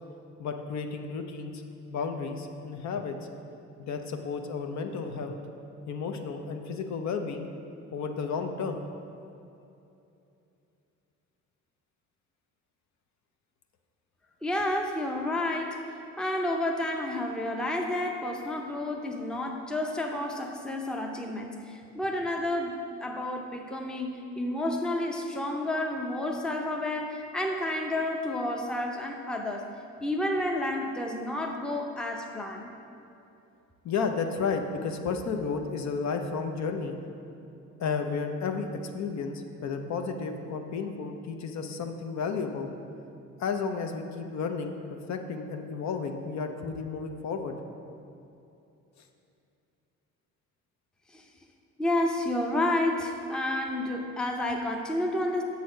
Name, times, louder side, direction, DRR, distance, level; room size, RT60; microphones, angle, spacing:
voice 1, 0.4-1.6 1.9-3.2 3.8-5.4 5.9-7.5 7.9-8.8 33.8-37.0 37.8-38.7 38.9-42.7 43.4-47.5, left 5 dB, 60° left, 5 dB, 0.7 m, -32 dB
voice 2, 14.4-15.9 16.2-29.7 30.0-32.7 51.1-51.2 51.8-55.4, left 1 dB, 5° left, 2 dB, 0.6 m, -30 dB
6.9 x 4.1 x 6.3 m, 2.7 s
cardioid pair, 95°, 31 cm